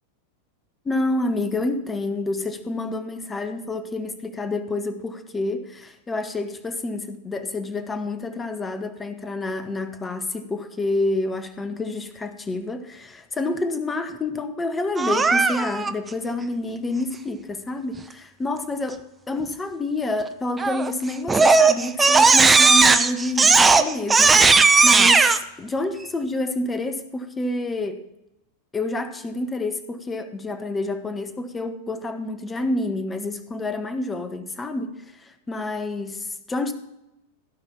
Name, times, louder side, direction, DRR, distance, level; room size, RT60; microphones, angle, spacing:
voice 1, 0.8-28.0 28.7-36.7, left 2 dB, 15° left, 1.1 m, -28 dB
Crying sobbing, 15.0-15.9 20.6-20.9 21.3-25.4, right 4 dB, 15° right, 0.7 m, -16 dB
16.0 x 5.5 x 5.8 m
figure-of-eight pair, 90°, 0 cm